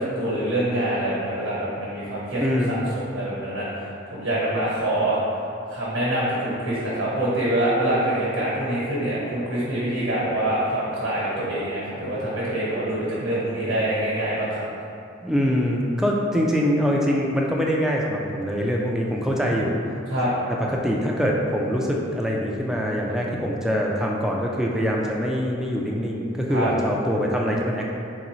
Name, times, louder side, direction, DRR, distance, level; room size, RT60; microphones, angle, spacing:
voice 1, 0.0-5.2 5.7-14.6 20.1-20.3 26.5-26.7, right 1 dB, 75° right, -8 dB, 1.0 m, -25 dB
voice 2, 2.4-3.0 15.2-19.7 20.7-28.0, equal, ahead, -2 dB, 0.3 m, -24 dB
3.8 x 3.1 x 3.0 m, 2.5 s
head